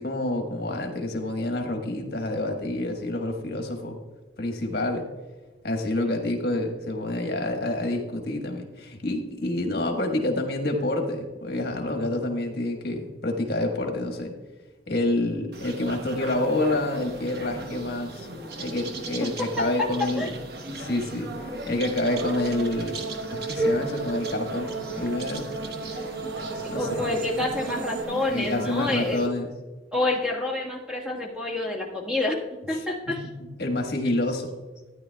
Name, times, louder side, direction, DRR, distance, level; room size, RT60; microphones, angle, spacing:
voice 1, 0.0-4.0 4.4-5.1 5.6-14.4 14.9-18.3 18.6-20.4 20.7-25.5 26.7-27.1 28.3-29.5 32.8-33.3 33.6-34.5, left 1 dB, 60° left, 3 dB, 1.3 m, -28 dB
sound 1, 15.5-29.3, right 1 dB, 60° right, 0.9 m, -36 dB
sound 2, 22.1-28.0, right 4 dB, 90° right, 1.2 m, -35 dB
voice 2, 26.7-29.3 29.9-33.3, left 2 dB, 5° right, -2 dB, 1.5 m, -28 dB
14.0 x 9.7 x 2.3 m, 1.2 s
head